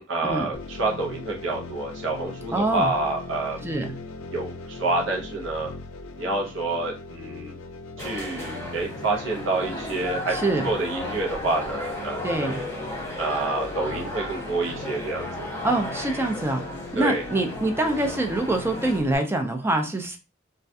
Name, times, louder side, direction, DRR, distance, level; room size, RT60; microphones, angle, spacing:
voice 1, 0.0-3.7 4.3-5.7 6.1-7.5 8.0-10.4 10.6-12.6 13.2-15.5 17.0-17.2, right 2 dB, 75° right, 0 dB, 0.7 m, -28 dB
sound 1, 0.5-19.2, left 3 dB, 85° left, 0.4 m, -40 dB
voice 2, 2.5-2.9 3.6-3.9 10.3-10.7 12.2-12.6 15.6-16.6 16.9-20.2, right 2 dB, 10° right, 5 dB, 0.3 m, -25 dB
sound 2, 8.0-19.0, left 1 dB, 15° left, 0.8 m, -34 dB
2.3 x 2.2 x 2.6 m, 0.30 s
head